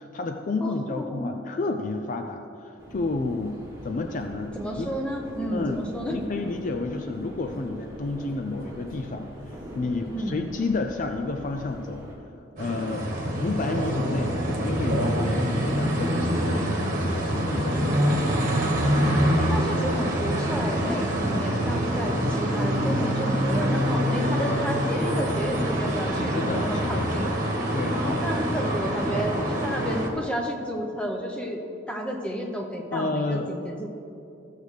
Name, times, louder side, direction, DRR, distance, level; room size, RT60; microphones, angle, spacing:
voice 1, 0.0-3.6 3.8-4.9 5.5-5.8 6.1-9.3 9.8-12.0 12.6-13.1 13.4-18.4 18.9-19.2 22.7-23.1 26.3-27.1 27.7-28.2 29.1-29.3 32.9-33.5, left 3 dB, 40° left, 5 dB, 0.4 m, -31 dB
voice 2, 0.6-1.3 4.6-6.1 10.1-10.4 17.7-18.7 19.4-27.3 27.9-31.6 31.9-33.9, equal, 5° left, 1 dB, 0.8 m, -31 dB
sound 1, 2.8-12.2, equal, 15° right, 1.8 m, -41 dB
sound 2, 12.6-30.1, equal, 45° right, 1.3 m, -25 dB
14.0 x 6.5 x 3.3 m, 2.7 s
head